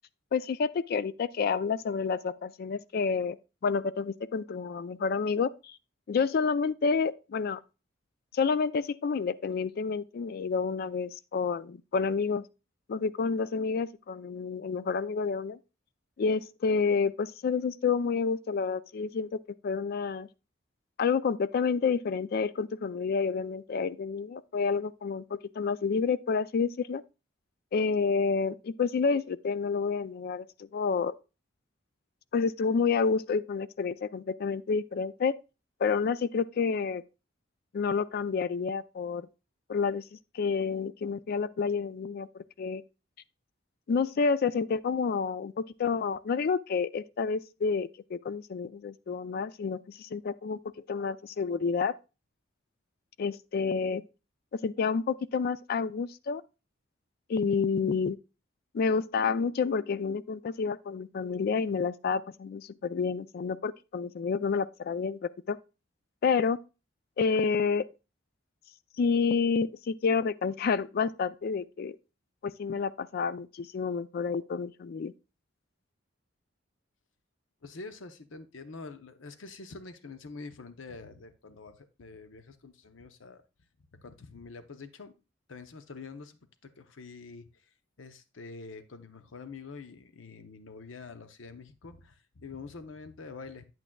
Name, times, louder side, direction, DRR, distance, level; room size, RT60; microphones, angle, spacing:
voice 1, 0.3-3.4 3.6-5.7 6.1-7.6 8.3-12.4 12.9-15.6 16.2-20.3 21.0-25.2 25.6-27.0 27.7-31.1 32.3-35.3 35.8-37.0 37.7-39.3 39.7-40.0 40.3-42.8 43.9-50.6 50.9-51.9 53.2-54.0 54.6-56.4 57.3-58.2 58.7-65.6 66.2-66.6 67.2-67.8 69.0-72.0 72.4-75.1, left 5 dB, 50° left, 0.3 m, -29 dB
voice 2, 77.6-83.4 83.9-85.1 85.5-87.7 88.0-93.7, left 4 dB, 80° left, 0.7 m, -46 dB
8.9 x 8.5 x 2.2 m
head